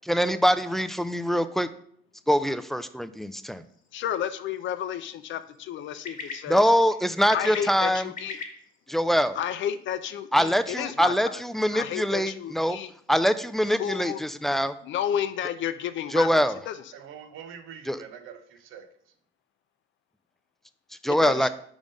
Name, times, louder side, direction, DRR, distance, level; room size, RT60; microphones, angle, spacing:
voice 1, 0.1-1.7 2.3-3.6 6.5-8.1 8.9-9.4 10.3-12.8 13.1-14.7 16.1-16.6 17.9-18.0 21.0-21.5, equal, ahead, 0.3 m, -23 dB
sound 1, 3.2-14.9, left 4 dB, 40° left, 1.3 m, -47 dB
voice 2, 3.9-6.6 7.3-8.4 9.4-11.4 11.7-12.9 13.8-14.2 14.8-16.8 21.1-21.5, left 10 dB, 70° left, 0.4 m, -31 dB
voice 3, 16.9-19.1, right 8 dB, 90° right, 0.7 m, -45 dB
5.3 x 3.6 x 5.1 m
cardioid pair, 90°, 20 cm